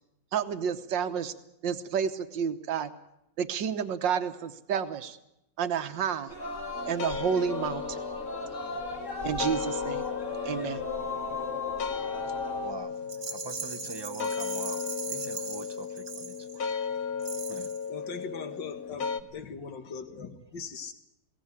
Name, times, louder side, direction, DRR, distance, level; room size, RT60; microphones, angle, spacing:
voice 1, 0.3-1.3 1.6-2.9 3.4-5.2 5.6-6.3 6.9-8.0 9.2-10.0 10.5-10.8, right 7 dB, 80° right, 9 dB, 1.8 m, -30 dB
Singing, 6.3-12.7, left 3 dB, 40° left, 2.8 m, -36 dB
sound 1, 6.7-19.2, left 6 dB, 60° left, 1.5 m, -36 dB
voice 2, 12.6-12.9 13.3-14.8 15.1-16.7 17.5-17.7, right 3 dB, 25° right, 11 dB, 0.5 m, -43 dB
Rattle, 13.1-16.7 17.2-17.9, right 6 dB, 45° right, 1.6 m, -39 dB
voice 3, 17.9-20.9, left 5 dB, 75° left, 8 dB, 2.4 m, -40 dB
22.0 x 17.5 x 9.8 m, 0.85 s
omnidirectional pair, 2.0 m